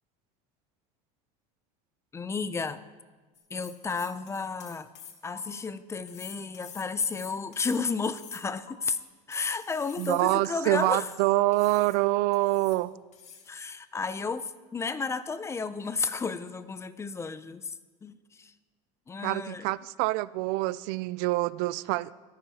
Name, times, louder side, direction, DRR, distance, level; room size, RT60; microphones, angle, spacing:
voice 1, 2.1-2.8 3.5-4.9 5.2-9.0 9.3-11.1 13.5-17.7 18.0-18.5 19.1-19.7, left 4 dB, 15° left, 14 dB, 0.5 m, -32 dB
sound 1, 3.3-5.4 6.1-8.7 9.3-11.2 11.5-12.0 12.3-12.8 13.1-13.6, left 7 dB, 45° left, 1.6 m, -49 dB
voice 2, 10.0-12.9 19.2-22.1, right 19 dB, 70° right, 19 dB, 0.4 m, -26 dB
17.0 x 13.0 x 2.9 m, 1.4 s
supercardioid pair, 130°, 17 cm